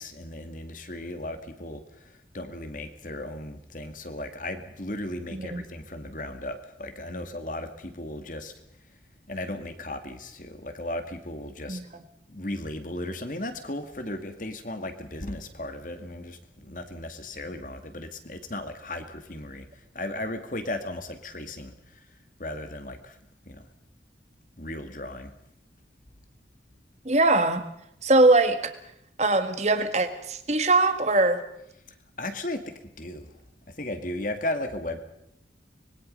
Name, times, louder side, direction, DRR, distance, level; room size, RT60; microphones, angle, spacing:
voice 1, 0.0-2.1 2.3-8.5 9.3-11.8 12.3-19.7 19.9-22.0 22.4-23.2 23.5-23.6 24.6-25.3 32.2-33.3 33.8-35.0, left 1 dB, 45° left, 7 dB, 2.2 m, -36 dB
voice 2, 5.3-5.6 11.7-12.0 27.0-27.7 28.0-28.7 29.2-31.4, right 2 dB, 40° right, 9 dB, 1.8 m, -22 dB
25.0 x 21.5 x 5.5 m, 0.76 s
head